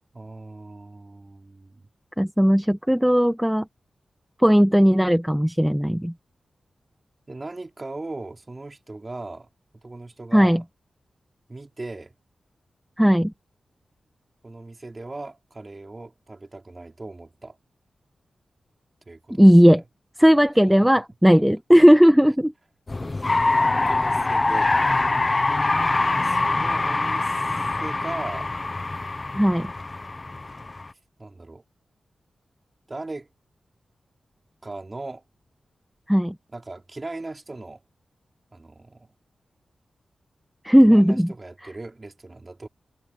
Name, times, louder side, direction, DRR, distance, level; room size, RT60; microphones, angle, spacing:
voice 1, 0.1-1.9 7.3-9.5 9.8-10.6 11.5-12.1 14.4-17.6 19.1-19.8 23.2-24.7 26.2-28.5 31.2-31.6 32.9-33.3 34.6-35.3 36.5-37.8 38.5-39.1 40.8-42.7, right 2 dB, 30° right, 4.5 m, -39 dB
voice 2, 2.2-3.7 4.4-6.1 10.3-10.6 13.0-13.3 19.4-19.8 20.2-22.5 23.8-24.0 29.3-29.7 36.1-36.3 40.6-41.3, equal, 5° right, 1.0 m, -16 dB
sound 1, 22.9-30.9, left 2 dB, 30° left, 0.5 m, -24 dB
wide cardioid pair, 100°, 0 cm